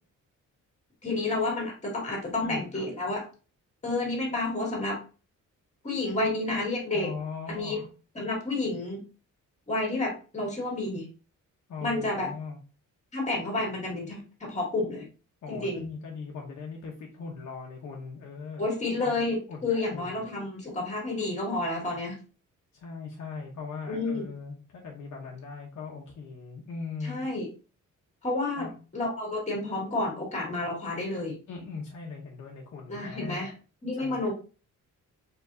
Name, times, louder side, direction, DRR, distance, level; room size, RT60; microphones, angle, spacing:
voice 1, 1.0-3.3 3.8-5.0 5.8-7.1 7.5-7.8 8.2-9.0 9.7-11.1 11.8-12.3 13.1-15.0 15.5-15.8 18.6-22.2 23.9-24.3 27.0-27.5 28.2-28.7 28.9-31.4 32.9-33.5 33.8-34.3, left 2 dB, 20° left, -1 dB, 1.9 m, -30 dB
voice 2, 2.4-2.9 6.9-7.9 11.7-12.6 15.4-18.6 19.0-19.1 19.5-20.3 22.7-27.2 28.5-28.7 31.5-33.5 34.0-34.3, left 4 dB, 60° left, -1 dB, 0.9 m, -40 dB
4.6 x 3.7 x 2.6 m, 0.35 s
wide cardioid pair, 160°, 32 cm